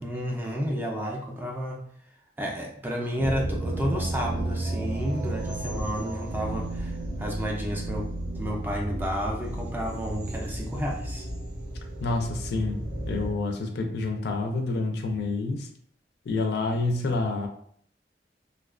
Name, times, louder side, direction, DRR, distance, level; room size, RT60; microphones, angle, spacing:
voice 1, 0.0-1.8 2.4-8.1 8.4-11.3, equal, 10° right, -1 dB, 0.3 m, -31 dB
sound 1, 3.2-13.3, right 1 dB, 85° right, 0.9 m, -32 dB
voice 2, 12.0-15.7 16.3-17.5, left 3 dB, 70° left, 4 dB, 0.4 m, -28 dB
2.4 x 2.2 x 2.3 m, 0.63 s
head